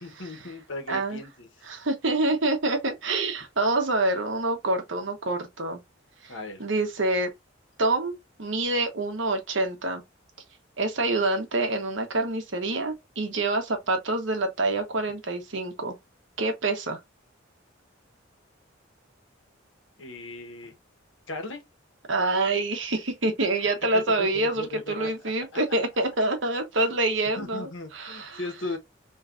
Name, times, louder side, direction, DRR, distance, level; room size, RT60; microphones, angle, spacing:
voice 1, 0.0-1.5 6.3-6.6 20.0-20.7 21.3-21.6 23.9-25.1 27.4-28.8, left 2 dB, 75° left, 1.3 m, -37 dB
voice 2, 0.9-1.2 1.6-5.8 6.2-6.3 6.6-7.3 7.8-8.1 8.4-10.0 10.8-15.9 16.4-17.0 22.1-28.4, right 2 dB, 70° right, 1.1 m, -26 dB
4.6 x 3.2 x 2.6 m
head